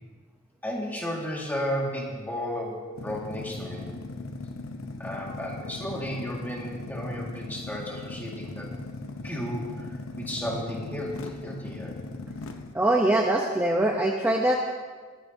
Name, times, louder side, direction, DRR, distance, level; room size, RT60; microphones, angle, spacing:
voice 1, 0.6-3.9 5.0-8.7 9.2-12.0, equal, 10° left, -3 dB, 1.8 m, -33 dB
sound 1, 2.9-12.7, left 2 dB, 65° left, 0.8 m, -39 dB
voice 2, 12.7-14.5, right 1 dB, 10° right, 1 dB, 0.6 m, -23 dB
19.0 x 10.5 x 2.7 m, 1.5 s
head